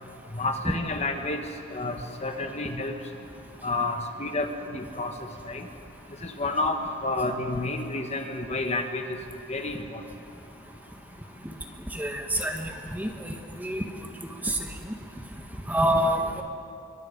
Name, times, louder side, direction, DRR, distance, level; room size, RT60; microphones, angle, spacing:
voice 1, 0.3-1.4 1.7-2.9 3.6-5.1 5.5-5.6 6.2-9.2 9.5-10.0, left 2 dB, 30° left, 5 dB, 1.3 m, -30 dB
voice 2, 11.9-12.5 12.9-13.1 13.6-13.8 15.7-16.4, right 1 dB, 10° right, 3 dB, 1.5 m, -25 dB
26.5 x 23.5 x 5.3 m, 2.8 s
head